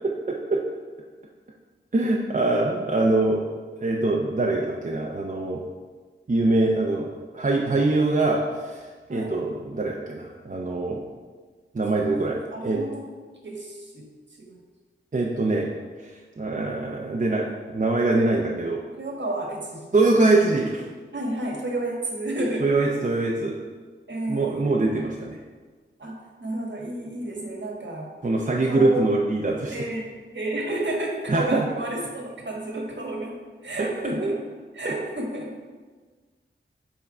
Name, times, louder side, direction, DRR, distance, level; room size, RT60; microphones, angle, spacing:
voice 1, 0.0-0.6 1.9-3.4 3.8-5.6 6.3-7.1 7.3-11.0 11.7-12.4 12.6-12.8 15.1-15.7 16.0-16.1 16.4-18.8 19.9-20.8 22.6-23.5 24.3-25.4 28.2-29.9 31.3-31.7 33.8-33.9 34.2-34.3 34.8-34.9, right 2 dB, 40° right, -2 dB, 0.7 m, -23 dB
voice 2, 9.1-9.4 11.9-13.1 13.4-14.0 14.4-14.6 18.9-19.9 21.1-22.7 24.1-24.7 26.0-28.1 28.6-29.0 29.7-30.0 30.3-33.4 33.6-34.4 34.7-35.5, right 1 dB, 60° right, -1 dB, 1.4 m, -31 dB
5.9 x 3.7 x 5.4 m, 1.4 s
wide cardioid pair, 50°, 21 cm